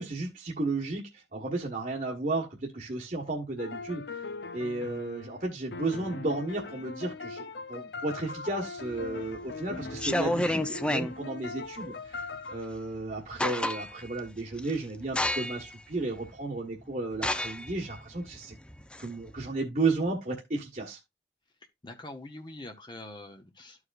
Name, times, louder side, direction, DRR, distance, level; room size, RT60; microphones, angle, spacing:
voice 1, 0.0-4.3 4.5-18.5 19.0-21.0, right 2 dB, 45° right, 1.3 m, -33 dB
sound 1, 3.6-12.6, left 3 dB, 65° left, 0.6 m, -40 dB
sound 2, 9.0-9.4 9.9-11.1 12.8-12.9 13.2-14.1 14.6-14.8 15.2-15.7 16.3-16.4 17.2-19.5, left 1 dB, 5° left, 0.4 m, -30 dB
voice 2, 21.8-23.9, left 2 dB, 25° left, 0.8 m, -44 dB
13.0 x 4.8 x 2.4 m
head